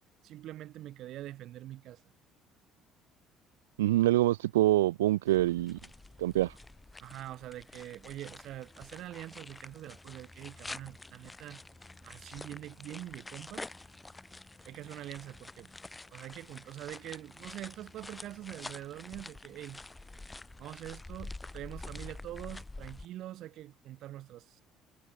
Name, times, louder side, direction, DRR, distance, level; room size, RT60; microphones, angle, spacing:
voice 1, 0.2-2.0 7.0-11.6 12.0-13.7 14.6-15.7 16.1-19.8 20.6-24.6, right 14 dB, 60° right, 2.1 m, -44 dB
voice 2, 3.8-5.8 6.2-6.5, right 15 dB, 75° right, 0.6 m, -25 dB
sound 1, 5.3-23.1, left 2 dB, 15° left, 2.9 m, -48 dB
figure-of-eight pair, 55°, 0 cm